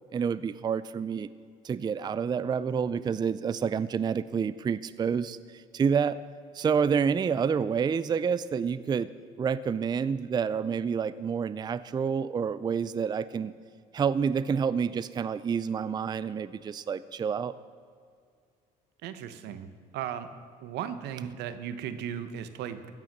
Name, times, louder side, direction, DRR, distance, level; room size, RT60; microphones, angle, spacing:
voice 1, 0.1-1.3 1.6-5.4 5.7-6.2 6.5-9.1 9.4-13.5 13.9-17.5, right 6 dB, 25° right, 16 dB, 0.4 m, -28 dB
voice 2, 19.0-20.3 20.6-22.9, right 9 dB, 85° right, 11 dB, 1.0 m, -36 dB
15.0 x 9.1 x 6.6 m, 2.2 s
cardioid pair, 110°, 17 cm